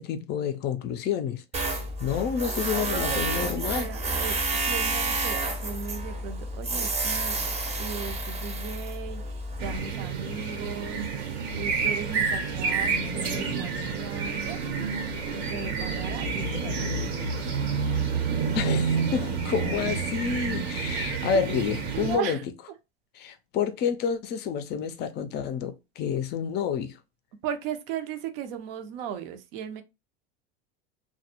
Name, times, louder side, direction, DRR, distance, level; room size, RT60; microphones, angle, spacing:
voice 1, 0.0-1.4 2.0-3.9 18.5-22.4 23.1-27.0, left 7 dB, 35° left, 0.4 m, -29 dB
Tools, 1.5-9.8, right 2 dB, 20° right, 0.6 m, -30 dB
voice 2, 2.7-11.3 11.5-14.8 15.4-17.4 21.3-21.6 21.9-22.4 27.4-29.8, right 8 dB, 70° right, 0.6 m, -37 dB
sound 1, 9.6-22.2, right 5 dB, 90° right, 1.1 m, -29 dB
2.2 x 2.0 x 2.9 m
supercardioid pair, 110°, 31 cm